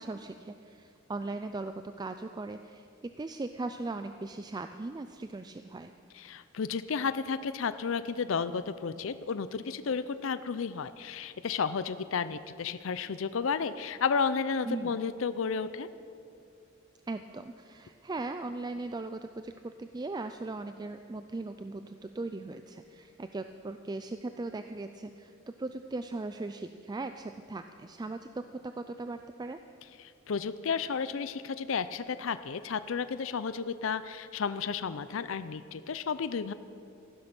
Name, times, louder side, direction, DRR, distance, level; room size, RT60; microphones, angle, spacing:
voice 1, 0.0-5.9 14.7-15.0 17.1-25.3 25.6-29.6, right 2 dB, 20° right, 8 dB, 0.3 m, -39 dB
voice 2, 6.2-15.9 30.0-36.5, left 5 dB, 70° left, 13 dB, 0.5 m, -32 dB
15.0 x 12.0 x 6.0 m, 2.5 s
head